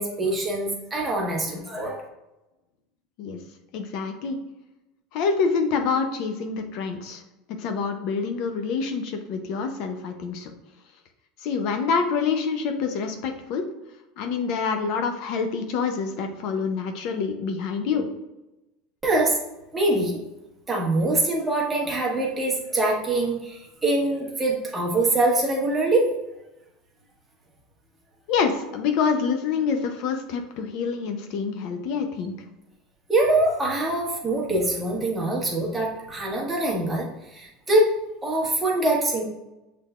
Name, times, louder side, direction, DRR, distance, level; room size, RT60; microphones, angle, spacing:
voice 1, 0.0-2.0 19.0-19.4 19.7-20.2 20.7-26.1 33.1-37.9 38.2-39.2, right 2 dB, 15° right, -2 dB, 1.2 m, -24 dB
voice 2, 3.7-4.4 5.1-7.2 7.6-10.5 11.4-13.7 14.2-18.1 28.3-32.3, left 5 dB, 60° left, 5 dB, 0.6 m, -26 dB
6.5 x 3.3 x 2.4 m, 0.97 s
supercardioid pair, 135°, 0 cm